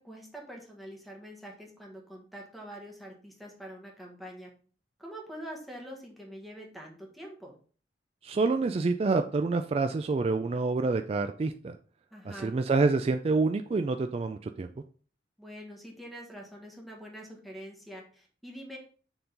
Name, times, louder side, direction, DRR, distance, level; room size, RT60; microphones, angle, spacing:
voice 1, 0.0-4.5 5.0-7.5 12.1-12.5 15.4-18.8, equal, ahead, -1 dB, 1.5 m, -45 dB
voice 2, 8.2-11.7 12.3-14.7, right 3 dB, 35° right, 7 dB, 0.3 m, -27 dB
6.9 x 3.8 x 3.9 m, 0.42 s
head